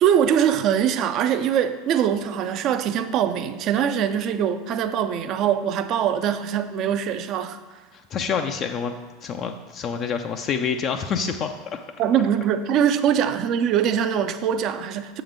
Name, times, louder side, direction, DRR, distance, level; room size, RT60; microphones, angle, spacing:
voice 1, 0.0-7.6 12.0-15.2, right 9 dB, 45° right, 0.4 m, -22 dB
voice 2, 7.9-8.9 9.2-11.8, left 6 dB, 40° left, 0.4 m, -27 dB
6.9 x 3.8 x 5.1 m
figure-of-eight pair, 80°, 0 cm